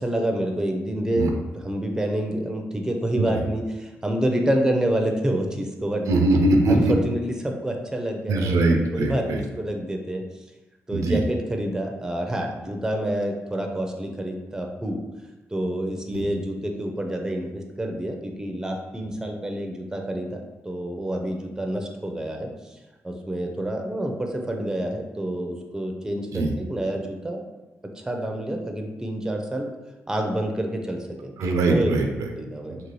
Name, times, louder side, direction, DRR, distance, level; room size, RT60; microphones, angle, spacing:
voice 1, 0.0-1.3 1.6-6.1 6.7-8.6 8.9-10.2 10.9-15.0 15.5-20.4 20.6-22.5 23.0-27.4 28.0-29.7 30.1-31.9 32.3-32.8, right 1 dB, 10° right, 2 dB, 0.4 m, -28 dB
voice 2, 6.1-6.9 8.3-9.4 10.9-11.2 16.1-16.2 26.3-26.5 31.4-32.3 32.7-32.8, right 2 dB, 85° right, 3 dB, 0.4 m, -21 dB
2.7 x 2.6 x 3.0 m, 1.1 s
cardioid pair, 85°, 5 cm